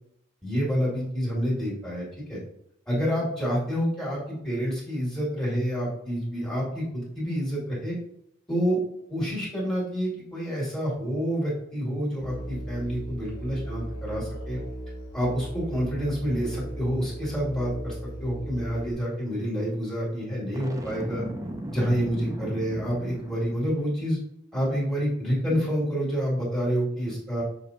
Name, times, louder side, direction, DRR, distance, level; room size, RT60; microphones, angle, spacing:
voice 1, 0.4-2.4 2.9-8.0 8.5-8.8 9.1-14.6 15.1-21.2 21.7-24.2 24.5-27.4, equal, 5° left, -8 dB, 2.3 m, -28 dB
Musical instrument, 12.2-18.9, equal, 70° left, 1.7 m, -37 dB
Boom, 20.5-23.7, right 1 dB, 15° right, 0.7 m, -36 dB
6.6 x 5.1 x 2.8 m, 0.72 s
head